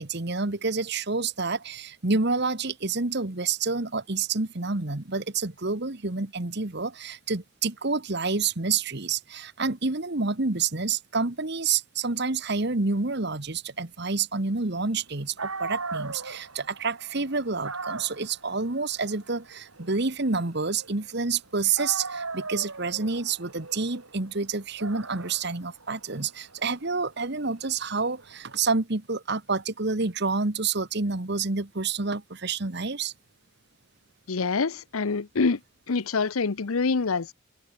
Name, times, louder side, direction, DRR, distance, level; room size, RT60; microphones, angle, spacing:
voice 1, 0.0-33.1, right 4 dB, 50° right, 1.5 m, -28 dB
Dog, 15.1-15.2 15.4-21.4 21.8-28.5, right 4 dB, 85° right, 6.6 m, -39 dB
voice 2, 34.3-35.6 35.9-37.3, left 4 dB, 85° left, 0.8 m, -26 dB
open air
head